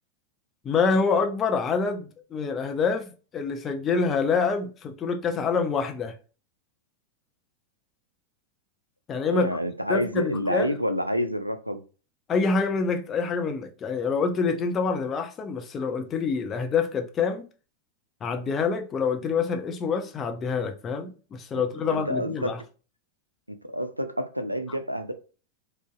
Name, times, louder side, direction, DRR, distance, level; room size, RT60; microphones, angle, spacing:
voice 1, 0.6-6.1 9.1-9.5 9.9-10.8 12.3-17.5 18.2-22.6, left 5 dB, 25° left, 0.6 m, -26 dB
voice 2, 9.3-11.8 21.5-22.6 23.7-25.1, equal, 90° right, 0.3 m, -28 dB
3.8 x 2.4 x 2.3 m
figure-of-eight pair, 90°, 0 cm